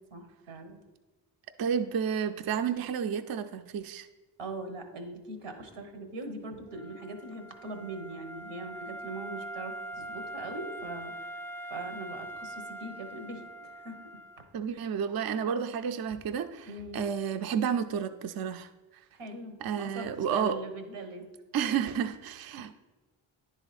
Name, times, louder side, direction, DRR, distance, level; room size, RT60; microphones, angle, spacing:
voice 1, 0.1-0.8 4.4-11.3 11.7-14.2 14.7-14.9 16.7-17.1 19.1-21.3, right 2 dB, 85° right, 6 dB, 1.2 m, -41 dB
voice 2, 1.6-4.1 14.5-18.7 19.6-20.6 21.5-22.7, right 7 dB, 50° right, 8 dB, 0.5 m, -31 dB
Wind instrument woodwind instrument, 6.7-14.5, right 1 dB, 5° left, 0.3 m, -42 dB
9.9 x 4.0 x 4.1 m, 1.2 s
supercardioid pair, 40°, 50 cm